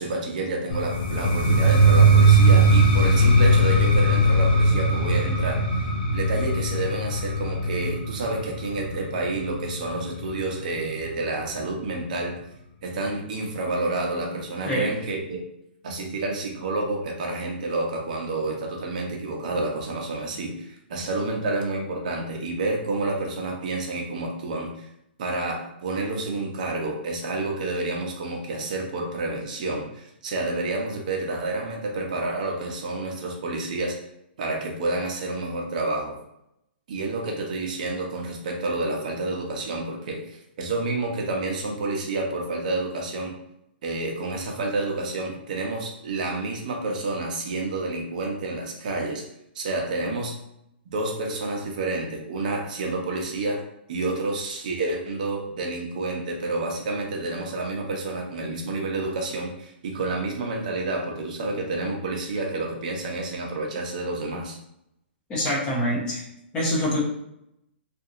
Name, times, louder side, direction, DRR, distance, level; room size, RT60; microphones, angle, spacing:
voice 1, 0.0-5.6 6.1-12.4 12.8-15.4 15.8-24.9 25.2-34.0 34.4-36.2 36.9-43.3 43.8-49.2 49.5-50.3 50.9-53.6 53.9-64.6, right 2 dB, 45° right, 0 dB, 0.7 m, -29 dB
sound 1, 0.7-10.5, right 2 dB, 55° left, 0.8 m, -19 dB
voice 2, 65.3-66.2 66.5-67.0, equal, 15° left, -4 dB, 0.7 m, -25 dB
2.8 x 2.6 x 2.5 m, 0.80 s
hypercardioid pair, 170°, 6 cm